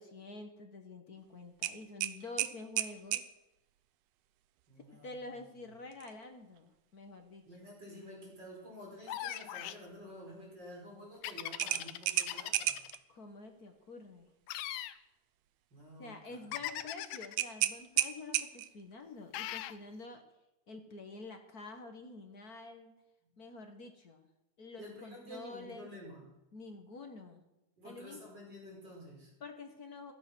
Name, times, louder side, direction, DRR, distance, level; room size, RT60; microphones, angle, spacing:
voice 1, 0.0-3.2 4.9-7.4 13.1-14.3 16.0-20.2 20.7-23.0 23.4-24.3 24.6-25.9 26.5-27.4 27.8-28.2 29.4-30.1, left 3 dB, 45° left, 5 dB, 1.2 m, -48 dB
sound 1, 1.6-3.3 5.9-6.1 6.6-6.7 11.6-13.0 17.4-18.8, right 13 dB, 75° right, 1.7 m, -33 dB
voice 2, 4.7-5.7 7.5-12.8 15.7-16.6 23.2-23.3 24.8-26.3 27.8-29.3, equal, 35° right, -2 dB, 5.6 m, -50 dB
sound 2, 9.1-9.8 11.2-13.0 14.5-15.0 16.5-17.4 19.3-19.8, left 13 dB, 85° left, 2.2 m, -40 dB
15.5 x 12.5 x 6.2 m, 0.96 s
omnidirectional pair, 3.5 m